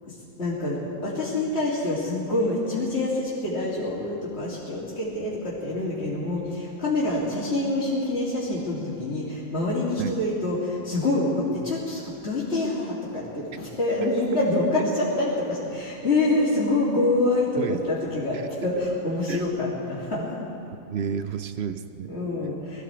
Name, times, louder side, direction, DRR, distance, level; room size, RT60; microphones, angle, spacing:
voice 1, 0.1-20.5 22.1-22.8, left 2 dB, 45° left, -9 dB, 2.7 m, -26 dB
voice 2, 20.9-22.2, right 7 dB, 60° right, 11 dB, 0.7 m, -31 dB
21.0 x 14.5 x 4.4 m, 2.8 s
omnidirectional pair, 1.5 m